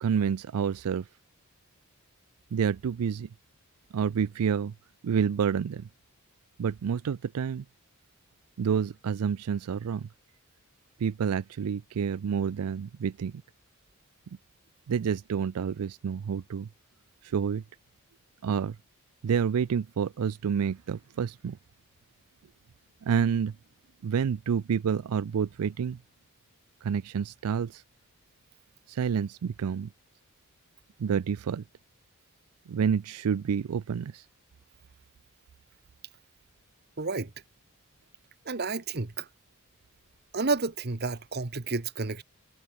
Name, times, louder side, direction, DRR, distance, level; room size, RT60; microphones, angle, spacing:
voice 1, 0.0-1.1 2.5-3.3 3.9-4.7 5.0-5.9 6.6-7.6 8.6-10.1 11.0-13.3 14.9-16.7 17.2-17.6 18.4-18.8 19.2-21.6 23.0-23.5 24.0-26.0 26.8-27.8 28.9-29.9 31.0-31.6 32.7-34.2, right 7 dB, 90° right, 0.4 m, -28 dB
voice 2, 37.0-37.3 38.4-39.3 40.3-42.2, right 3 dB, 45° right, 1.1 m, -30 dB
head